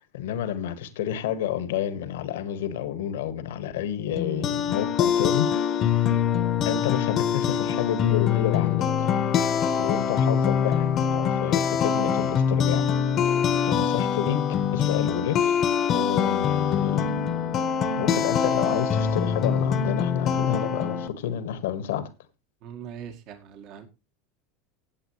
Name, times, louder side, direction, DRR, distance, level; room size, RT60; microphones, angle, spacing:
voice 1, 0.0-5.5 5.7-6.2 6.7-12.9 13.2-14.4 14.7-15.6 15.9-17.1 17.9-22.1, left 10 dB, 75° left, 1.6 m, -30 dB
sound 1, 4.2-21.1, left 8 dB, 45° left, 1.1 m, -24 dB
voice 2, 22.6-23.9, right 8 dB, 55° right, 1.8 m, -41 dB
16.0 x 8.1 x 3.2 m
hypercardioid pair, 85°, 0 cm